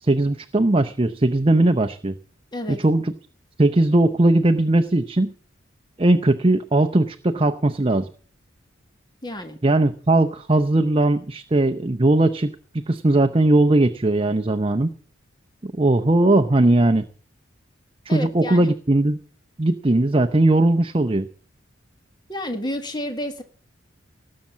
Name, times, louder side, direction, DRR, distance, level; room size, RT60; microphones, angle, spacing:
voice 1, 0.0-2.1 2.7-3.1 3.6-5.3 6.0-8.1 9.6-14.9 15.6-17.1 18.1-19.2 19.6-21.3, right 2 dB, 25° right, 9 dB, 0.6 m, -19 dB
voice 2, 9.2-9.6 18.1-18.7 22.3-23.4, left 1 dB, 20° left, 6 dB, 1.6 m, -30 dB
18.5 x 7.4 x 7.2 m, 0.44 s
head